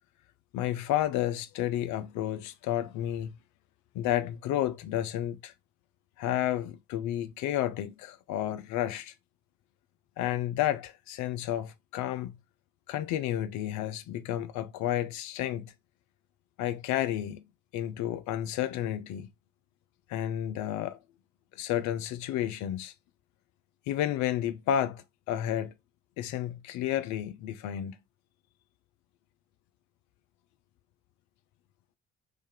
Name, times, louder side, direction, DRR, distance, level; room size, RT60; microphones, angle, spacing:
voice 1, 0.5-3.3 3.9-5.5 6.2-9.1 10.2-12.3 12.9-15.7 16.6-17.4 17.7-19.3 20.1-21.0 21.5-22.9 23.9-25.7 26.2-28.0, left 12 dB, 60° left, 0.5 m, -31 dB
3.3 x 2.6 x 3.7 m
hypercardioid pair, 55°, 32 cm